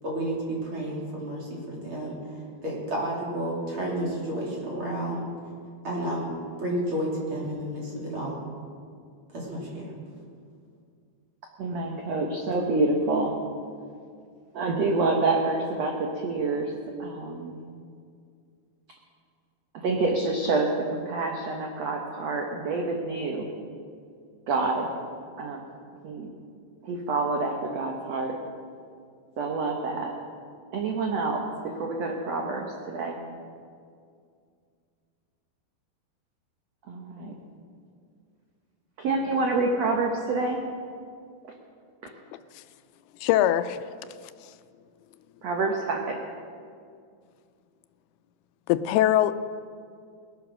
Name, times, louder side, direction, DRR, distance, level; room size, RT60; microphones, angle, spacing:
voice 1, 0.0-5.3 5.8-6.3 6.6-8.4 9.3-9.8, right 1 dB, 35° right, -4 dB, 3.5 m, -31 dB
voice 2, 11.6-13.3 14.5-17.6 19.7-23.5 24.5-24.9 25.4-25.6 26.0-26.3 26.8-28.4 29.4-30.1 30.7-33.2 36.9-37.3 39.0-40.6 45.4-46.3, right 3 dB, 70° right, 1 dB, 1.6 m, -27 dB
voice 3, 43.2-43.8 48.7-49.4, left 12 dB, 85° left, 12 dB, 2.4 m, -21 dB
20.0 x 9.1 x 6.2 m, 2.2 s
omnidirectional pair, 4.5 m